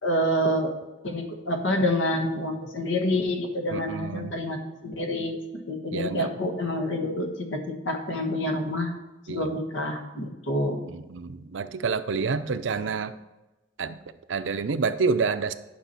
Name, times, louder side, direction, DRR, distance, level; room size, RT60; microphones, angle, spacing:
voice 1, 0.0-0.7 1.0-5.4 5.7-8.9 9.3-10.8, left 1 dB, 80° left, 4 dB, 1.4 m, -27 dB
voice 2, 3.7-4.3 5.9-6.3 9.3-9.5 10.9-13.1 13.8-14.0 14.3-15.5, right 4 dB, 85° right, 12 dB, 0.5 m, -28 dB
10.5 x 6.0 x 4.4 m, 1.1 s
head